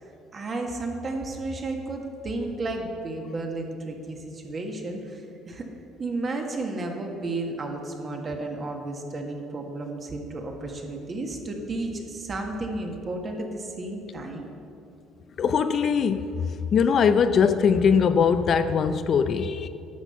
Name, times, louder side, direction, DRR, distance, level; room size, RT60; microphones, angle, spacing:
voice 1, 0.3-5.6 6.0-14.5, right 2 dB, 35° right, 2 dB, 1.6 m, -32 dB
voice 2, 15.4-16.4 16.7-19.7, left 6 dB, 50° left, 11 dB, 0.4 m, -21 dB
10.0 x 6.1 x 7.0 m, 2.7 s
cardioid pair, 100°, 0 cm